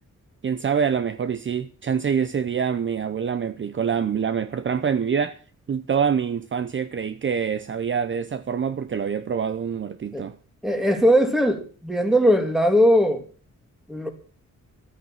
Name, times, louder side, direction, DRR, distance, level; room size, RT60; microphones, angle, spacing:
voice 1, 0.4-5.4 5.7-10.4, right 7 dB, 40° right, 0.7 m, -25 dB
voice 2, 10.6-13.2 13.9-14.1, equal, ahead, 2.5 m, -19 dB
14.0 x 9.0 x 7.3 m
wide cardioid pair, 160°, 30 cm